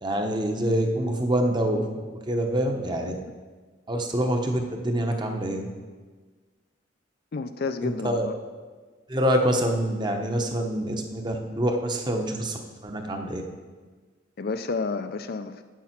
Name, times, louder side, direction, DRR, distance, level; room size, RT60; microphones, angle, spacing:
voice 1, 0.0-1.9 2.1-3.1 3.9-5.7 7.8-8.3 9.1-13.4, right 1 dB, 25° right, 4 dB, 0.9 m, -26 dB
voice 2, 7.3-8.3 14.4-15.6, left 4 dB, 50° left, 10 dB, 0.4 m, -30 dB
8.4 x 7.2 x 5.8 m, 1.4 s
head